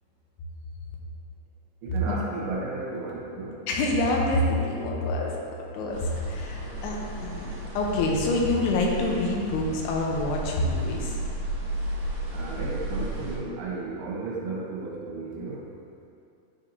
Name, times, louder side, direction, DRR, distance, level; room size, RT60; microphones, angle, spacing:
voice 1, 1.8-3.6 12.3-15.6, right 3 dB, 80° right, -4 dB, 2.9 m, -34 dB
voice 2, 3.7-11.2, left 2 dB, 80° left, -1 dB, 2.7 m, -27 dB
sound 1, 5.9-13.4, right 1 dB, 65° right, 2.6 m, -34 dB
9.7 x 4.6 x 2.7 m, 2.5 s
omnidirectional pair, 4.8 m